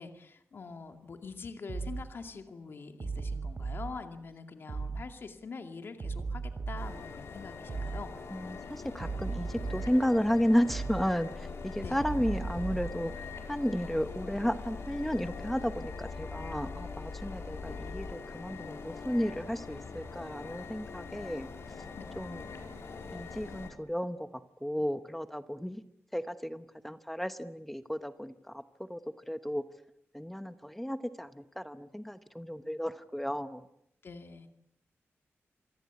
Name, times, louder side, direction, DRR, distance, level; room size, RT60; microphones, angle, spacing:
voice 1, 0.0-8.2 11.8-12.0 34.0-34.5, left 4 dB, 50° left, 6 dB, 2.4 m, -44 dB
sound 1, 1.7-2.0 3.0-3.8 4.7-5.0 6.0-6.9 7.7-8.0 9.0-9.9 10.7-11.0 12.0-12.9, right 4 dB, 45° right, 5.2 m, -36 dB
sound 2, 6.8-23.7, left 4 dB, 65° left, 4.5 m, -42 dB
voice 2, 8.3-21.5 22.2-22.4 23.1-24.3 24.6-25.8 26.1-28.6 28.9-29.0 29.3-29.6 30.1-33.6, equal, 5° left, 10 dB, 1.0 m, -33 dB
27.5 x 23.5 x 8.3 m, 0.76 s
wide cardioid pair, 170°, 5 cm